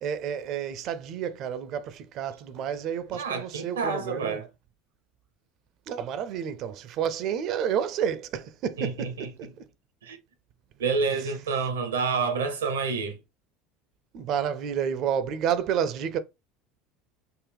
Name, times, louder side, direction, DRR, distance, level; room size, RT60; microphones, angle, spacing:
voice 1, 0.0-4.4 5.9-9.5 14.1-16.2, right 8 dB, 55° right, 0.5 m, -30 dB
voice 2, 3.1-4.5 8.8-9.3 10.0-10.2 10.8-13.2, right 5 dB, 85° right, 0.7 m, -28 dB
3.8 x 2.1 x 3.3 m
hypercardioid pair, 75°, 0 cm